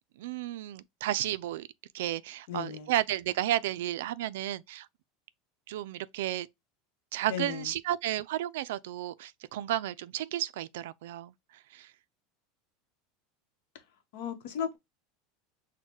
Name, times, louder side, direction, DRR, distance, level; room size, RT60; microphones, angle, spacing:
voice 1, 0.2-1.7 1.9-4.9 5.7-6.5 7.1-11.3 11.7-11.9, right 13 dB, 80° right, 0.3 m, -32 dB
voice 2, 2.5-2.9 7.3-7.7 14.1-14.8, left 8 dB, 65° left, 0.9 m, -35 dB
6.2 x 2.1 x 2.8 m
supercardioid pair, 175°, 0 cm